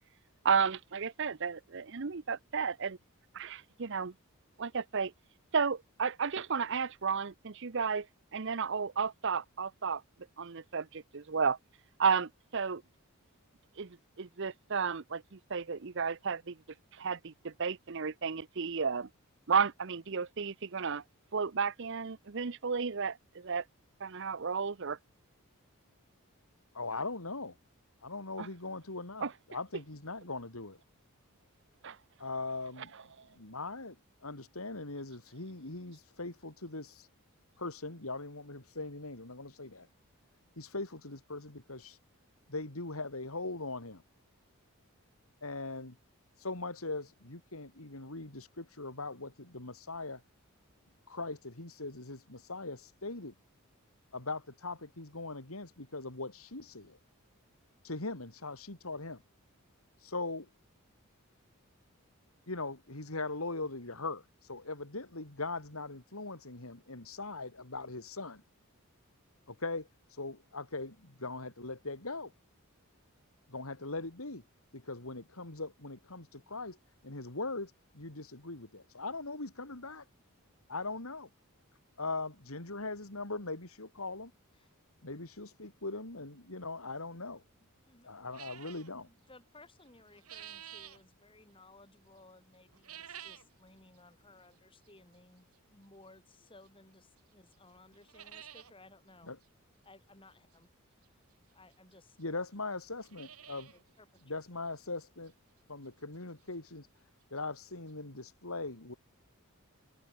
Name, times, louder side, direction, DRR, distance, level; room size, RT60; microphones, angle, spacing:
voice 1, 0.4-3.0 3.3-4.1 4.6-5.1 5.5-8.1 8.3-10.0 10.4-11.6 12.0-12.8 13.8-16.6 16.9-19.1 19.5-21.0 21.3-23.6 24.0-25.0 28.4-28.5 29.2-29.3 31.8-32.0, right 5 dB, 55° right, 0.7 m, -33 dB
voice 2, 26.7-27.6 28.0-30.8 32.2-32.9 33.3-34.0 34.2-37.1 37.6-39.9 40.6-42.0 42.5-44.0 45.4-46.0 46.4-50.2 51.1-53.3 54.1-57.0 57.8-59.2 60.0-60.5 62.5-68.4 69.5-72.3 73.5-74.4 74.7-76.8 77.0-80.1 80.7-81.3 82.0-84.3 85.0-87.4 88.0-89.1 99.3-99.4 102.2-103.7 104.3-105.3 105.7-106.9 107.3-108.9, left 3 dB, 75° left, 3.2 m, -40 dB
sound 1, 88.3-88.9 89.9-91.0 92.7-93.5 93.9-94.0 94.9-95.0 96.6-96.7 97.2-97.3 97.5-97.6 97.9-98.7 99.1-99.2 99.4-99.5 101.0-101.1 101.9-102.0 102.2-102.3 102.8-103.8 104.2-104.3 104.8-104.9 105.3-105.4 107.1-107.2 107.4-107.5 107.9-108.0, right 10 dB, 85° right, 3.4 m, -50 dB
voice 3, 89.1-99.3 99.8-100.7 101.0-101.2 101.5-102.2 103.7-104.6, left 2 dB, 25° left, 5.1 m, -59 dB
head